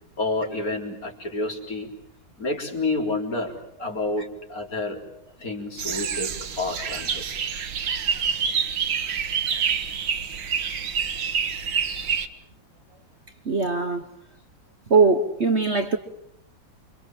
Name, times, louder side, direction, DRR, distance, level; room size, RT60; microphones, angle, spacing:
voice 1, 0.2-1.9 2.4-5.0 5.4-7.2, left 2 dB, 45° left, 4.6 m, -29 dB
sound 1, 5.8-12.3, right 7 dB, 70° right, 2.2 m, -27 dB
voice 2, 13.4-14.1 14.9-16.0, right 4 dB, 40° right, 1.3 m, -20 dB
29.5 x 25.0 x 7.7 m
omnidirectional pair, 2.1 m